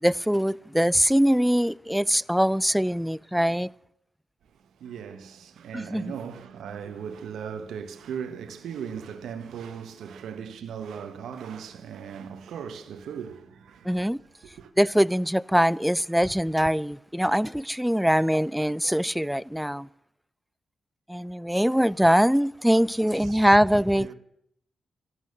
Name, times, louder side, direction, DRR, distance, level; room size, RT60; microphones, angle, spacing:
voice 1, 0.0-3.7 5.7-6.0 13.8-14.2 14.8-19.9 21.1-24.1, equal, 5° right, 0.5 m, -23 dB
voice 2, 4.4-14.7 23.0-23.4 23.7-24.1, right 7 dB, 75° right, 1.1 m, -38 dB
14.5 x 12.0 x 6.6 m
supercardioid pair, 45°, 0 cm